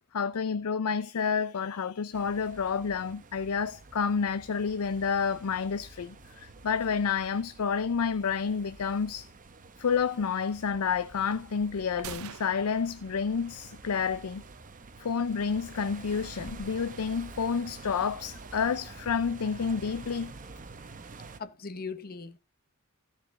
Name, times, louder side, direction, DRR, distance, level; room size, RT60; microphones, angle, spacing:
voice 1, 0.1-9.3 9.8-14.4 15.0-20.3, left 6 dB, 80° left, 0.5 m, -29 dB
sound 1, 2.1-21.4, right 3 dB, 35° right, 0.9 m, -48 dB
sound 2, 12.0-13.9, right 9 dB, 70° right, 0.5 m, -46 dB
voice 2, 21.4-22.4, left 4 dB, 45° left, 0.9 m, -39 dB
14.0 x 4.9 x 6.4 m
head